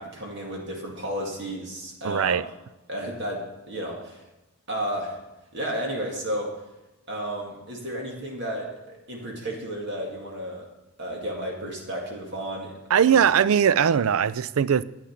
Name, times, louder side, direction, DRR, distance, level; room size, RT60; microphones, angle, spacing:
voice 1, 0.0-2.4 2.9-4.2 4.7-5.2 5.5-6.6 7.1-10.7 11.0-13.2, right 1 dB, 50° right, 2.1 m, -33 dB
voice 2, 2.0-2.4 12.9-14.8, right 8 dB, 75° right, 0.4 m, -20 dB
10.0 x 9.5 x 5.8 m
head